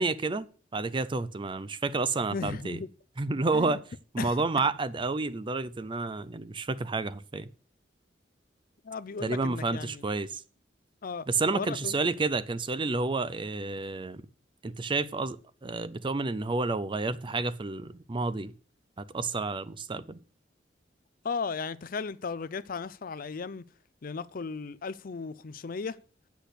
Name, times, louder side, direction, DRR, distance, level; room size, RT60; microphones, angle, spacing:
voice 1, 0.0-2.8 3.2-3.8 4.1-7.5 9.2-10.4 11.3-14.2 14.6-18.5 19.0-20.2, right 3 dB, 25° right, 0.5 m, -30 dB
voice 2, 2.3-2.9 3.5-3.8 4.2-4.4 8.8-10.0 11.0-11.2 11.5-12.0 21.2-23.6 24.0-26.0, left 4 dB, 50° left, 0.5 m, -35 dB
8.3 x 6.2 x 8.2 m
head